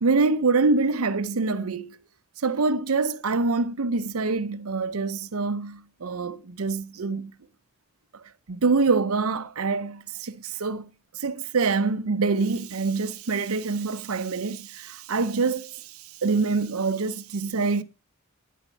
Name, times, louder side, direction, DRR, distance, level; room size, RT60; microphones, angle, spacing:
voice 1, 0.0-2.0 2.4-7.3 8.5-10.9 11.1-17.8, right 4 dB, 85° right, 0.7 m, -25 dB
10.0 x 8.3 x 4.4 m
head